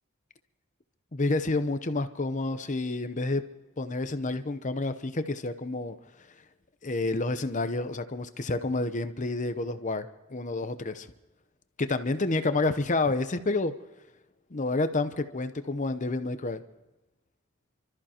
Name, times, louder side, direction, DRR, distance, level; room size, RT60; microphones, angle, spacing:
voice 1, 1.1-3.4 3.8-6.0 6.8-11.1 11.8-13.8 14.5-16.6, left 2 dB, 35° left, 10 dB, 0.8 m, -29 dB
29.5 x 13.5 x 2.9 m, 1.1 s
head